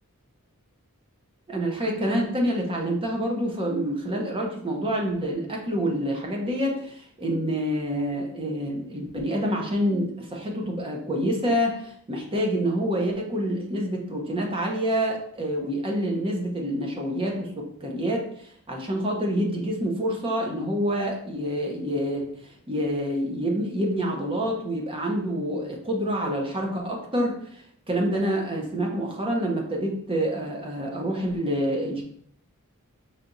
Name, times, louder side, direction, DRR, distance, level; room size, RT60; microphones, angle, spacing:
voice 1, 1.5-18.3 18.7-22.4 22.7-32.0, equal, 25° right, 0 dB, 0.8 m, -27 dB
5.7 x 3.3 x 2.6 m, 0.65 s
head